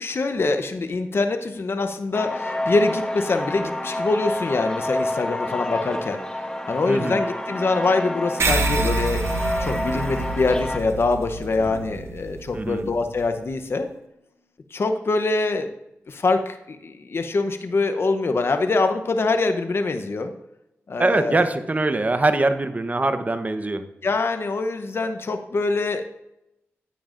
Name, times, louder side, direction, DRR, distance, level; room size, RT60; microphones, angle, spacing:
voice 1, 0.0-6.2 6.7-9.2 9.6-13.9 14.7-15.7 16.1-20.3 20.9-21.4 24.0-26.1, left 3 dB, 55° left, 8 dB, 0.7 m, -24 dB
sound 1, 2.1-10.8, left 1 dB, 15° left, 1.0 m, -28 dB
voice 2, 6.9-7.2 12.5-12.9 21.0-23.8, right 2 dB, 30° right, 9 dB, 0.9 m, -22 dB
sound 2, 8.4-13.2, right 3 dB, 65° right, 1.0 m, -28 dB
sound 3, 11.6-13.8, right 3 dB, 80° right, 2.4 m, -43 dB
10.0 x 9.1 x 2.5 m, 0.87 s
cardioid pair, 55°, 5 cm